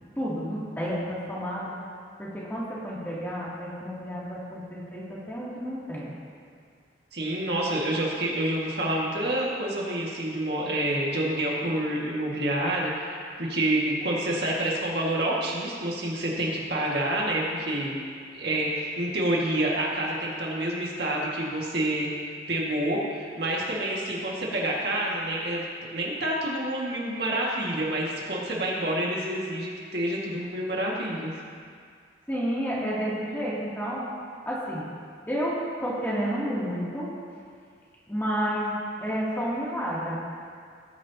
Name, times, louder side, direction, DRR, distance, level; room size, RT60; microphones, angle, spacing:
voice 1, 0.2-1.7 2.2-6.1 32.3-34.1 34.5-34.9 35.3-37.1 38.1-40.1, equal, 10° left, -8 dB, 2.7 m, -30 dB
voice 2, 7.1-18.0 18.3-25.6 25.9-31.3, right 1 dB, 60° right, -4 dB, 1.9 m, -28 dB
19.0 x 9.6 x 2.9 m, 2.1 s
head